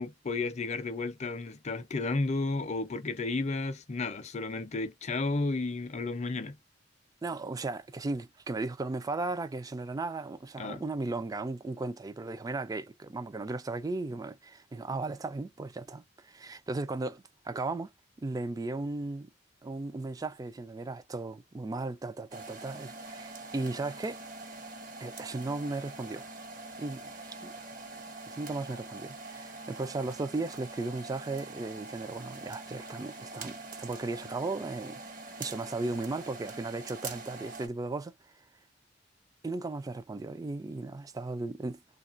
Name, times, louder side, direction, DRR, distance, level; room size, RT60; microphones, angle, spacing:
voice 1, 0.0-6.6 10.6-10.8, left 3 dB, 40° left, 0.5 m, -32 dB
voice 2, 7.2-17.9 18.2-19.3 19.6-24.2 25.0-26.2 26.8-27.5 28.3-35.0 35.4-38.1 39.4-41.8, right 3 dB, 20° right, 0.3 m, -36 dB
sound 1, 22.3-37.7, right 3 dB, 50° right, 0.9 m, -44 dB
3.1 x 2.3 x 2.5 m
head